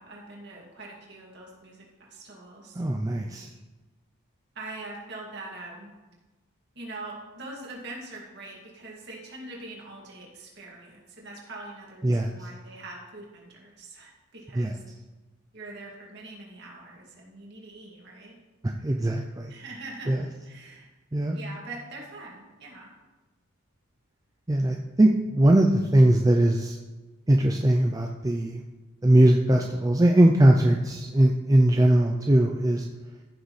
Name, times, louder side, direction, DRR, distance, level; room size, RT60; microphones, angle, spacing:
voice 1, 0.0-2.8 4.5-5.9 6.8-14.8 15.5-18.3 19.5-20.9 21.3-22.9, right 2 dB, 50° right, -3 dB, 2.3 m, -43 dB
voice 2, 2.8-3.5 12.0-12.3 14.5-14.8 18.6-19.5 20.1-20.2 21.1-21.4 24.5-26.8 27.3-28.6 29.0-32.8, right 1 dB, 15° right, 2 dB, 0.4 m, -20 dB
14.5 x 6.5 x 3.2 m, 1.2 s
head